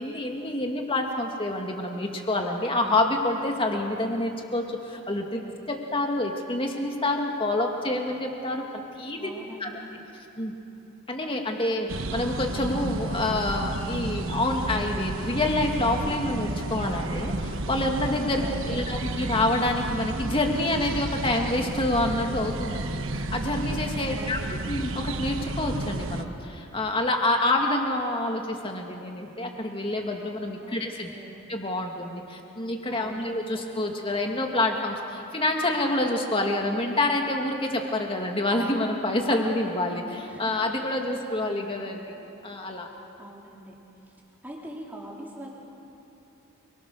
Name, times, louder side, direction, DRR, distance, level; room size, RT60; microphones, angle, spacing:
voice 1, 0.0-8.6 9.0-9.3 9.6-9.8 10.4-10.5 11.1-24.4 24.7-31.1 31.5-42.0 42.4-42.9, left 2 dB, 25° left, 2 dB, 2.3 m, -27 dB
voice 2, 9.2-9.8 18.4-18.9 24.1-24.7 30.6-31.4 32.9-34.1 39.3-40.6 41.0-41.1 41.4-41.7 43.2-43.7 44.4-45.5, right 1 dB, 10° right, -4 dB, 4.0 m, -43 dB
sound 1, 11.9-26.3, right 2 dB, 60° right, 1.1 m, -32 dB
28.5 x 23.5 x 6.8 m, 2.9 s
head